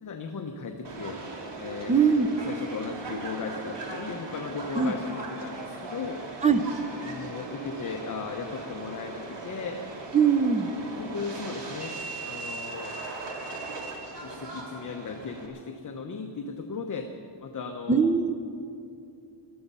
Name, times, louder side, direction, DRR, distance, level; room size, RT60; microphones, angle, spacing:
voice 1, 0.0-1.2 1.6-2.0 2.4-6.2 7.0-9.8 10.8-13.0 14.2-17.1 17.4-18.1, left 4 dB, 40° left, 4 dB, 1.0 m, -37 dB
Subway metro underground, 0.8-15.5, right 2 dB, 65° right, 2.5 m, -39 dB
voice 2, 1.9-2.3 4.8-4.9 6.4-6.6 10.1-10.7 17.9-18.3, right 6 dB, 15° right, 9 dB, 0.7 m, -21 dB
19.0 x 13.5 x 5.5 m, 2.6 s
wide cardioid pair, 150°, 46 cm